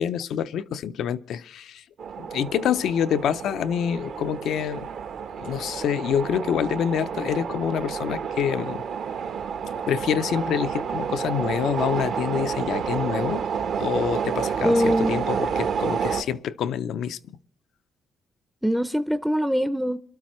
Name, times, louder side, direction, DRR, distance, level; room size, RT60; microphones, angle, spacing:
voice 1, 0.0-1.8 2.2-4.9 5.4-8.8 9.9-13.5 13.8-17.2, left 9 dB, 75° left, 0.5 m, -26 dB
sound 1, 2.0-16.2, right 7 dB, 65° right, 1.0 m, -29 dB
voice 2, 14.6-15.3 18.6-20.0, equal, ahead, 0.5 m, -23 dB
23.5 x 12.5 x 3.1 m
cardioid pair, 90°, 0 cm